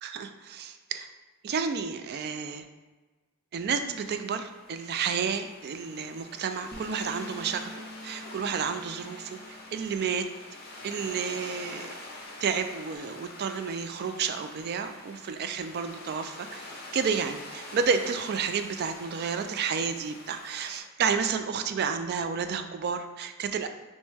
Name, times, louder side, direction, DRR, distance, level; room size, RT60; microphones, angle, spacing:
voice 1, 0.0-1.1 1.4-2.6 3.5-10.3 10.8-11.9 12.4-23.7, right 6 dB, 50° right, 8 dB, 0.3 m, -31 dB
sound 1, 3.9-20.8, left 2 dB, 50° left, 0.8 m, -45 dB
Bass guitar, 6.7-11.0 11.3-13.0, left 2 dB, 10° left, 0.5 m, -48 dB
6.0 x 2.1 x 3.3 m, 1.3 s
head